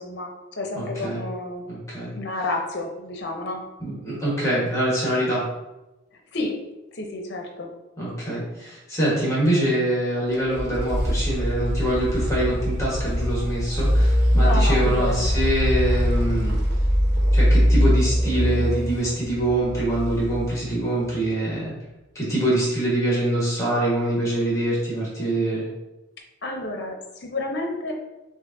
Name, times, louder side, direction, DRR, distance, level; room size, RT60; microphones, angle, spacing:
voice 1, 0.0-1.6 2.1-3.6 6.3-6.6 6.9-7.7 14.3-15.3 26.4-27.9, left 2 dB, 55° left, 2 dB, 0.7 m, -30 dB
voice 2, 0.7-1.2 1.7-2.1 3.8-5.4 8.0-16.6 17.3-21.7 22.1-25.7, right 1 dB, 15° left, -6 dB, 1.3 m, -24 dB
sound 1, 10.3-21.1, equal, 55° right, 0.8 m, -22 dB
6.2 x 2.5 x 2.6 m, 1.0 s
head